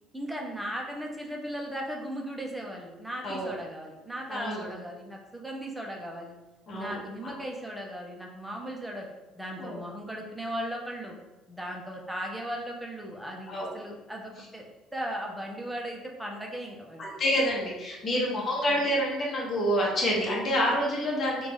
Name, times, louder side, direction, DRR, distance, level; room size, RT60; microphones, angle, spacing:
voice 1, 0.1-6.3 6.7-9.1 9.3-11.2 11.5-14.6 14.9-17.2 18.1-18.5, equal, 5° right, 0 dB, 0.9 m, -37 dB
voice 2, 4.3-4.7 6.7-7.0 7.2-7.3 9.6-9.8 13.5-13.7 17.0-21.5, equal, 40° left, -4 dB, 1.2 m, -28 dB
3.2 x 2.6 x 3.5 m, 1.1 s
hypercardioid pair, 60°, 0 cm